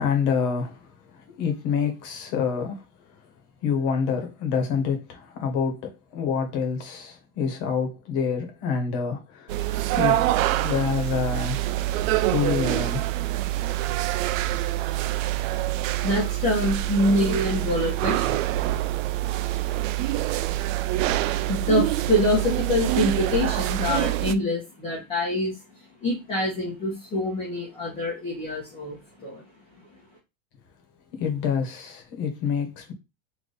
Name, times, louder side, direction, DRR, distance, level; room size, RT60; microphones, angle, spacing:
voice 1, 0.0-2.8 3.6-9.6 10.0-10.3 10.6-11.7 12.3-13.0 31.1-32.9, left 6 dB, 45° left, 1.4 m, -27 dB
sound 1, 9.5-24.3, right 15 dB, 90° right, 0.6 m, -25 dB
voice 2, 16.0-18.4 20.6-25.5 26.0-29.4, left 1 dB, 15° left, 1.1 m, -26 dB
3.5 x 3.1 x 4.1 m
supercardioid pair, 180°, 39 cm